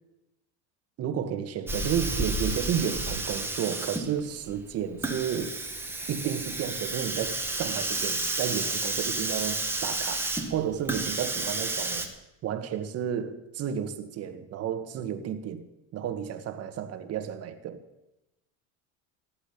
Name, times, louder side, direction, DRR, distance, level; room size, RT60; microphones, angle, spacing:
voice 1, 1.0-5.6 6.1-12.1 12.4-15.7 15.9-17.8, right 9 dB, 40° right, 8 dB, 1.9 m, -32 dB
Hiss, 1.7-12.1, right 2 dB, 5° right, 1.9 m, -31 dB
16.0 x 8.0 x 9.9 m, 0.95 s
supercardioid pair, 125°, 36 cm